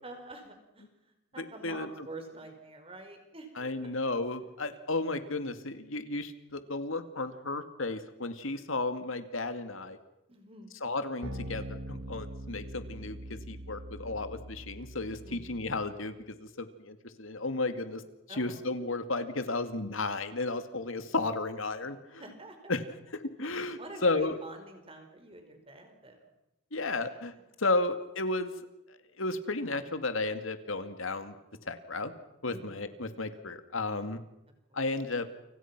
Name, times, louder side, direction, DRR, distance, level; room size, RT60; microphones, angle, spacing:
voice 1, 0.0-4.0 10.3-10.8 15.2-15.7 18.3-18.7 22.2-22.7 23.4-26.3 27.1-27.2 27.6-27.7 32.5-32.8 34.7-34.8 35.1-35.2, right 2 dB, 30° right, 5 dB, 5.1 m, -48 dB
voice 2, 1.4-1.9 3.6-10.0 10.8-18.0 18.3-22.2 22.7-22.8 23.1-24.4 26.7-28.5 29.2-31.4 31.7-32.1 32.4-34.2 34.7-35.3, left 2 dB, 80° left, 9 dB, 2.3 m, -33 dB
sound 1, 11.2-16.0, right 1 dB, 70° right, 4.1 m, -43 dB
29.5 x 26.5 x 6.1 m, 0.89 s
head